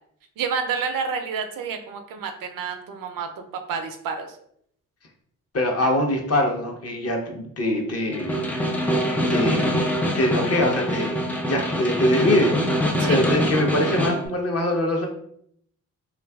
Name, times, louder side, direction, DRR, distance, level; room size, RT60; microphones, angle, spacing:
voice 1, 0.4-3.3 3.7-4.4 12.1-12.4 13.0-13.2, right 6 dB, 65° right, 6 dB, 0.5 m, -29 dB
voice 2, 5.5-8.5 9.3-15.1, left 1 dB, 45° left, 1 dB, 0.7 m, -23 dB
Snare drum, 8.1-14.3, equal, 5° left, 0.3 m, -24 dB
2.6 x 2.3 x 2.2 m, 0.69 s
supercardioid pair, 50°, 36 cm